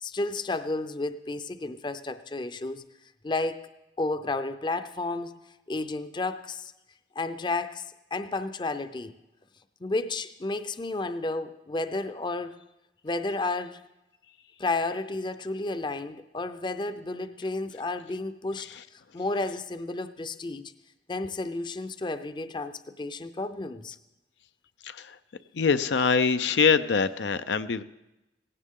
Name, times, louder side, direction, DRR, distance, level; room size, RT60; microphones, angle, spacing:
voice 1, 0.0-2.8 3.2-3.7 4.0-6.7 7.2-9.1 9.8-12.6 13.0-13.8 14.6-20.6 21.1-24.0, left 2 dB, 25° left, 11 dB, 0.5 m, -32 dB
voice 2, 24.8-25.2 25.5-27.8, left 5 dB, 85° left, 11 dB, 0.5 m, -24 dB
18.0 x 16.5 x 3.7 m, 0.96 s
head